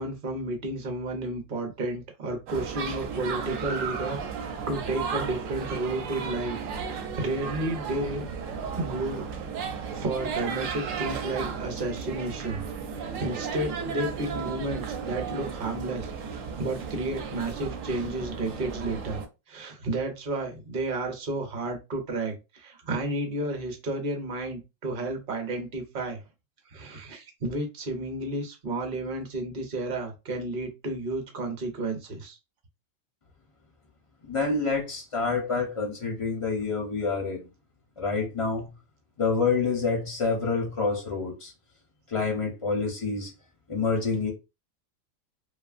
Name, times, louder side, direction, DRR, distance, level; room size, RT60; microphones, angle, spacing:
voice 1, 0.0-6.6 6.9-8.3 8.8-9.3 9.6-12.6 12.9-19.2 19.5-26.2 26.7-32.4, right 2 dB, 45° right, 0.8 m, -32 dB
sound 1, 2.5-19.3, right 6 dB, 75° right, 0.9 m, -34 dB
voice 2, 34.2-37.4 38.0-38.7 39.2-41.5 42.1-43.3 43.7-44.3, left 4 dB, 45° left, 0.4 m, -27 dB
2.9 x 2.4 x 2.4 m
omnidirectional pair, 1.4 m